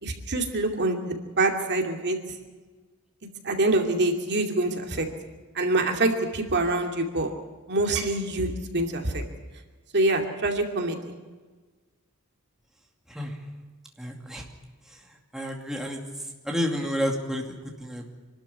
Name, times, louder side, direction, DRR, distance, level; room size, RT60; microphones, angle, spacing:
voice 1, 0.0-2.2 3.4-5.1 5.5-7.3 7.7-9.2 9.9-11.1, right 2 dB, 50° right, 3 dB, 2.6 m, -25 dB
voice 2, 14.0-14.4 14.9-16.0 16.4-18.1, equal, ahead, 0 dB, 2.4 m, -31 dB
26.0 x 12.5 x 9.8 m, 1.3 s
head